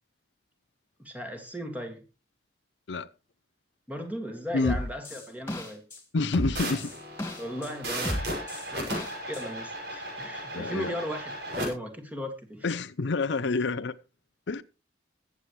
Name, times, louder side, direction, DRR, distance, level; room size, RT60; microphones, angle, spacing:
voice 1, 1.0-2.0 3.9-5.8 7.4-8.4 8.7-8.8 9.2-12.7, equal, 10° right, 2.2 m, -37 dB
sound 1, 4.6-6.0 6.3-7.7 8.0-9.4, equal, 15° left, 2.5 m, -33 dB
voice 2, 6.1-6.9 8.8-8.9 10.5-11.0 12.6-13.9 14.5-14.6, left 3 dB, 75° left, 0.6 m, -28 dB
sound 2, 6.5-11.7, right 1 dB, 70° right, 6.4 m, -36 dB
21.5 x 8.3 x 3.2 m
head